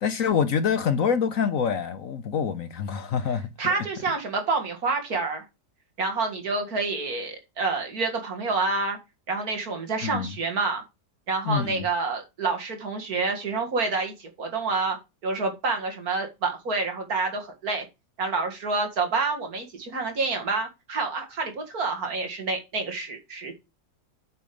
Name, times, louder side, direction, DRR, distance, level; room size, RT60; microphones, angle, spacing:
voice 1, 0.0-3.7 10.0-10.3 11.5-11.8, left 7 dB, 60° left, 1.1 m, -26 dB
voice 2, 3.6-5.4 6.0-9.0 9.3-10.8 11.3-15.0 15.2-17.9 18.2-23.5, right 3 dB, 60° right, 2.5 m, -28 dB
8.5 x 5.1 x 6.9 m
omnidirectional pair, 1.8 m